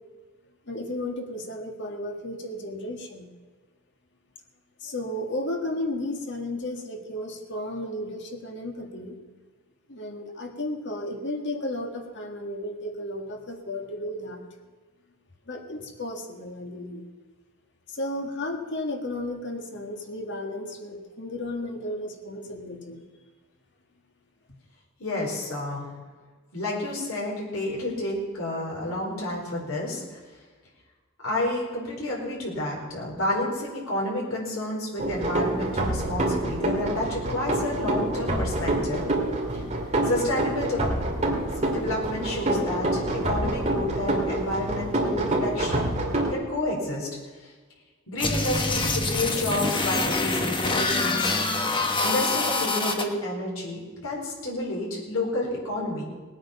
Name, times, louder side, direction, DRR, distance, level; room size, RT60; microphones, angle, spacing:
voice 1, 0.7-3.3 4.8-9.2 9.9-14.4 15.5-17.1 17.9-23.0, left 1 dB, 55° left, 3 dB, 1.9 m, -33 dB
voice 2, 25.0-25.9 26.5-30.2 31.2-39.0 40.0-40.9 41.6-45.9 46.3-47.1 47.4-47.5 48.1-51.7 52.0-56.0, left 1 dB, 70° left, -3 dB, 4.6 m, -30 dB
sound 1, 35.0-46.3, right 1 dB, 30° right, 2.4 m, -27 dB
sound 2, 48.2-53.0, left 3 dB, 25° left, 1.2 m, -25 dB
19.0 x 9.0 x 5.7 m, 1.4 s
head